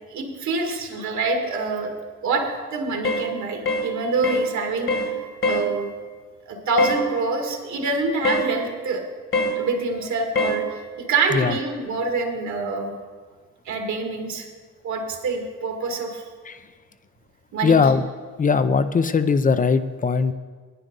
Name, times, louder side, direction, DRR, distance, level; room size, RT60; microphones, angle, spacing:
voice 1, 0.1-1.9 2.2-5.2 5.5-5.9 6.5-9.0 9.5-12.9 13.7-14.5 14.8-16.2 17.5-17.8, right 3 dB, 70° right, 2 dB, 2.1 m, -26 dB
sound 1, 3.0-3.3 3.7-3.9 4.2-4.5 4.9-5.1 5.4-5.7 6.8-7.0 8.2-8.5 9.3-9.6 10.3-10.6, left 2 dB, 45° left, 1.6 m, -23 dB
voice 2, 17.6-18.0 18.4-20.3, left 5 dB, 25° left, 12 dB, 0.5 m, -19 dB
9.9 x 9.4 x 5.4 m, 1.5 s
cardioid pair, 90°, 30 cm